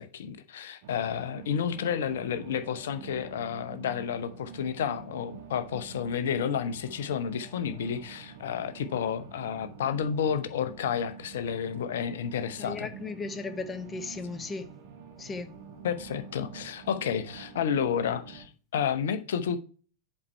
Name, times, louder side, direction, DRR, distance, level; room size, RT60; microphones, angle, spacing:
voice 1, 0.0-12.9 15.8-19.6, left 8 dB, 60° left, 0.8 m, -31 dB
sound 1, 0.8-18.5, right 6 dB, 50° right, 1.3 m, -47 dB
voice 2, 12.6-14.7 15.2-15.5, left 4 dB, 20° left, 0.8 m, -36 dB
7.5 x 4.4 x 4.5 m
figure-of-eight pair, 90°, 0 cm